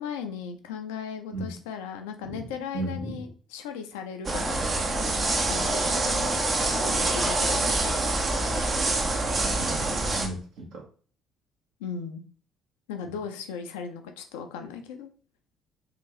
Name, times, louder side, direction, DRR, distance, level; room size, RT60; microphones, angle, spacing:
voice 1, 0.0-3.3 3.5-4.6 5.5-6.4 6.8-7.9 11.8-12.2 12.9-15.1, left 6 dB, 70° left, 6 dB, 0.4 m, -37 dB
voice 2, 2.7-3.2 9.5-10.8 13.0-13.1, right 1 dB, 60° right, 0 dB, 0.9 m, -35 dB
sound 1, 4.2-10.3, right 2 dB, 35° right, 0.6 m, -26 dB
2.8 x 2.5 x 3.0 m, 0.41 s
figure-of-eight pair, 50°, 0 cm